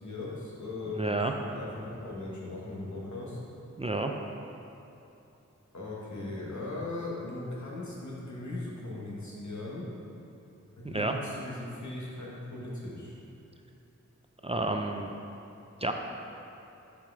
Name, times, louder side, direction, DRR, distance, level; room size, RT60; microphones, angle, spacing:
voice 1, 0.0-3.4 5.7-9.8 10.8-13.2, left 2 dB, 75° left, -5 dB, 1.4 m, -38 dB
voice 2, 1.0-1.3 3.8-4.1 10.8-11.1 14.4-15.1 15.8-15.9, right 2 dB, 20° right, 2 dB, 0.4 m, -30 dB
7.3 x 4.8 x 3.5 m, 2.9 s
wide cardioid pair, 65°, 29 cm